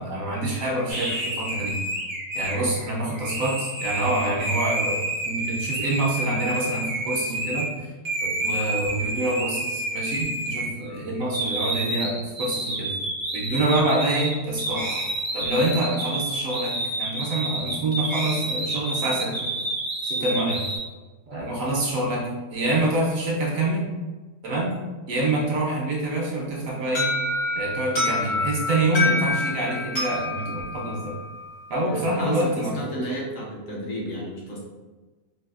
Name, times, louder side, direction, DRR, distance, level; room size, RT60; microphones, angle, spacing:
voice 1, 0.0-1.8 2.3-5.0 5.3-7.7 8.2-12.9 13.3-14.9 15.3-16.7 17.0-19.5 20.0-20.6 21.3-23.8 24.4-24.7 25.1-27.1 27.5-31.2 31.7-32.9, right 2 dB, 65° right, -3 dB, 0.9 m, -26 dB
sound 1, 0.9-7.7 8.0-11.0 11.3-20.8, right 2 dB, 30° right, 0.5 m, -29 dB
Alarm, 27.0-31.7, left 2 dB, 80° left, 2.0 m, -27 dB
voice 2, 31.9-34.6, equal, 65° left, -4 dB, 0.9 m, -32 dB
4.0 x 2.3 x 2.3 m, 1.3 s
omnidirectional pair, 1.7 m